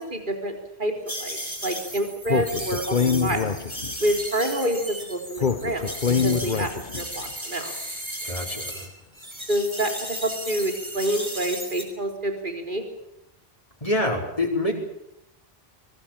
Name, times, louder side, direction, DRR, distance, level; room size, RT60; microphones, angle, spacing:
voice 1, 0.1-0.9 1.2-3.0 3.2-3.5 4.0-5.9 6.2-7.7 9.5-12.8, right 1 dB, 55° right, 4 dB, 4.2 m, -27 dB
sound 1, 1.1-8.9 9.2-11.8, equal, 25° right, 8.1 m, -35 dB
Speech, 2.3-4.1 5.4-7.1, left 6 dB, 50° left, 1.1 m, -25 dB
voice 2, 8.2-8.9 13.8-14.7, left 1 dB, 35° left, -1 dB, 4.9 m, -26 dB
24.0 x 21.0 x 7.5 m, 0.84 s
omnidirectional pair, 1.0 m